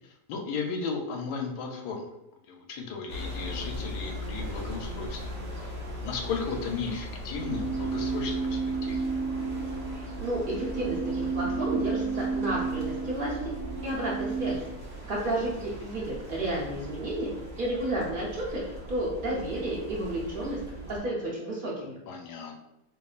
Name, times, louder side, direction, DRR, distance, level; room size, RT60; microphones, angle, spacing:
voice 1, 0.3-2.1 2.5-5.2 6.0-9.0 22.1-22.6, left 5 dB, 75° left, 3 dB, 1.1 m, -35 dB
sound 1, 3.1-21.0, equal, 5° left, 0.5 m, -39 dB
sound 2, 7.4-14.6, right 5 dB, 85° right, 1.2 m, -32 dB
voice 2, 9.9-13.3 13.8-14.6 15.1-17.3 17.6-20.6 20.9-22.0, right 1 dB, 60° right, -4 dB, 0.5 m, -31 dB
4.3 x 2.7 x 2.3 m, 0.86 s
omnidirectional pair, 1.8 m